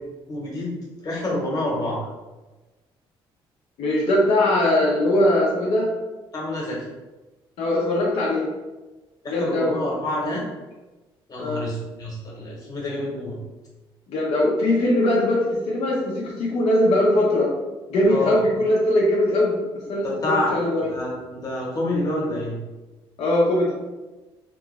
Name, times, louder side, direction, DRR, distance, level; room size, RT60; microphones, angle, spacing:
voice 1, 0.3-0.7 1.0-2.0 6.3-6.8 9.2-10.4 11.3-13.4 18.1-18.4 20.0-20.5 20.9-22.6, left 1 dB, 40° left, -3 dB, 1.1 m, -27 dB
voice 2, 3.8-5.9 7.6-8.5 9.3-9.8 11.4-11.7 14.1-17.5 17.9-19.6 19.9-20.9 23.2-23.7, left 1 dB, 75° left, -4 dB, 0.7 m, -21 dB
3.0 x 2.3 x 3.1 m, 1.2 s
cardioid pair, 115°, 10 cm